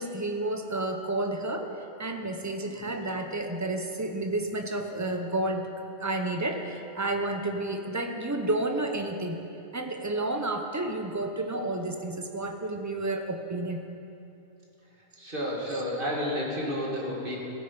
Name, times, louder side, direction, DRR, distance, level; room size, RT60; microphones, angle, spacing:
voice 1, 0.0-1.7 2.0-5.7 6.0-9.4 9.7-13.8, right 2 dB, 20° right, 5 dB, 0.5 m, -31 dB
voice 2, 2.6-2.9 15.2-17.4, equal, 40° right, -3 dB, 1.9 m, -31 dB
16.5 x 9.0 x 5.2 m, 2.8 s
omnidirectional pair, 1.5 m